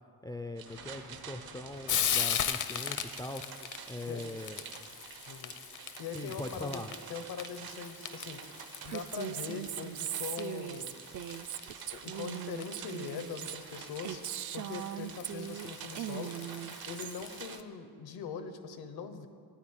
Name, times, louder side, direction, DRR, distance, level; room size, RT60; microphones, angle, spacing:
voice 1, 0.2-3.4 3.9-4.6 6.1-6.9, left 2 dB, 10° left, 7 dB, 0.3 m, -41 dB
sound 1, 0.6-17.6, right 8 dB, 70° right, 0.8 m, -48 dB
Frying (food), 0.7-17.6, left 9 dB, 55° left, 0.7 m, -40 dB
voice 2, 6.0-6.8 7.1-8.4 8.8-11.0 11.9-14.2 14.5-16.3 16.9-19.3, left 6 dB, 80° left, 9 dB, 1.1 m, -41 dB
Female speech woman speaking, 8.9-15.7 16.0-17.2, right 11 dB, 55° right, 0.4 m, -40 dB
10.0 x 9.3 x 8.9 m, 2.3 s
wide cardioid pair, 165°, 37 cm